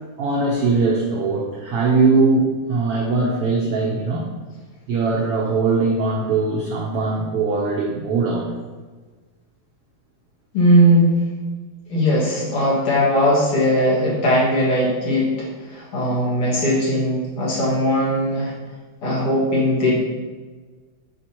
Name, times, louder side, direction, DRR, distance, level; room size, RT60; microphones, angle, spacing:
voice 1, 0.2-4.3 4.9-8.5, right 3 dB, 85° right, -1 dB, 1.3 m, -20 dB
voice 2, 10.5-11.2 11.9-18.5 19.0-19.9, equal, 50° left, -7 dB, 2.6 m, -19 dB
9.5 x 5.2 x 2.9 m, 1.4 s
omnidirectional pair, 3.6 m